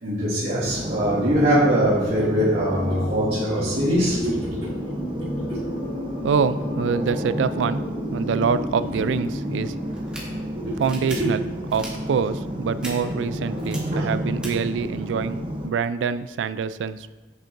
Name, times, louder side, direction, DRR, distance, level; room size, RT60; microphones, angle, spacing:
voice 1, 0.0-4.6 5.4-5.5 10.6-10.7 11.2-11.3 13.9-14.1, equal, 70° right, -13 dB, 2.0 m, -22 dB
sound 1, 0.7-15.7, equal, 30° right, 0.7 m, -31 dB
sound 2, 1.8-9.9, equal, 50° left, 1.1 m, -34 dB
voice 2, 6.2-7.8 8.1-9.7 10.8-11.4 11.7-17.1, right 6 dB, 85° right, 14 dB, 0.3 m, -25 dB
sound 3, 9.9-10.2 10.8-11.2 11.7-11.9 12.8-12.9 13.6-13.8 14.4-14.5, right 1 dB, 5° right, 1.3 m, -37 dB
8.8 x 5.4 x 2.6 m, 1.3 s
head